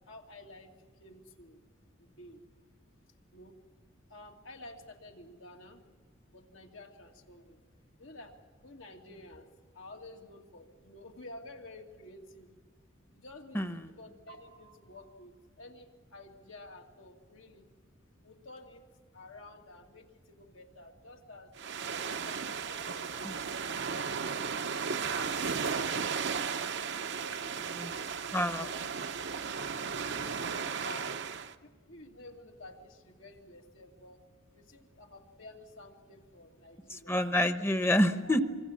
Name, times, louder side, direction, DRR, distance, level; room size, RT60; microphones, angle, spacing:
voice 1, 0.0-1.6 2.0-2.4 3.3-3.6 4.1-5.8 6.3-7.6 8.0-8.4 8.6-9.5 9.7-12.6 13.1-17.7 18.2-18.8 19.1-21.5 22.2-24.1 25.0-26.8 27.2-27.9 28.6-28.7 29.2-29.3 30.0-31.1 31.6-34.2 34.5-37.1 38.2-38.4, left 2 dB, 80° left, 1 dB, 2.6 m, -51 dB
sound 1, 21.6-31.5, right 6 dB, 60° right, 0.8 m, -35 dB
voice 2, 28.3-28.6 36.9-38.4, left 1 dB, 10° left, 9 dB, 1.0 m, -28 dB
25.0 x 24.0 x 7.5 m, 1.4 s
head